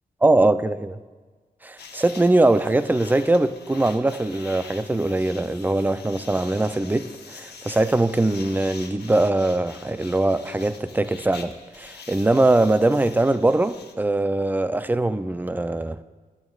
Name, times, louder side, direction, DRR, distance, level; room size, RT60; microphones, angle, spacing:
voice 1, 0.2-1.0 1.6-16.0, right 2 dB, 10° right, 0.4 m, -21 dB
sound 1, 1.8-13.9, left 5 dB, 85° left, 1.1 m, -44 dB
19.0 x 11.0 x 2.4 m
wide cardioid pair, 100°, 17 cm